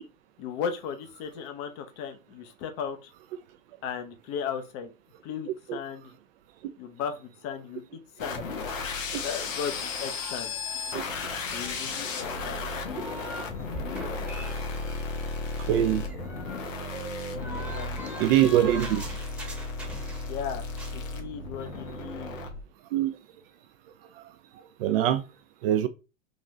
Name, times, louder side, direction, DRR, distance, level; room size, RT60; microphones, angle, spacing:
voice 1, 0.4-3.1 3.8-4.9 5.2-6.1 6.8-7.8 8.2-8.4 9.2-10.5 11.5-12.7 17.5-18.1 20.3-20.6 20.9-22.4, left 7 dB, 40° left, 0.8 m, -36 dB
sound 1, 8.2-22.6, left 4 dB, 80° left, 1.1 m, -34 dB
sound 2, 9.7-13.5 13.7-20.4 20.7-21.0, right 1 dB, 5° right, 1.0 m, -43 dB
voice 2, 15.7-16.0 18.2-19.0 22.9-23.1 24.8-25.2 25.6-25.9, right 12 dB, 50° right, 0.5 m, -22 dB
3.9 x 2.4 x 3.0 m
hypercardioid pair, 105°, 39 cm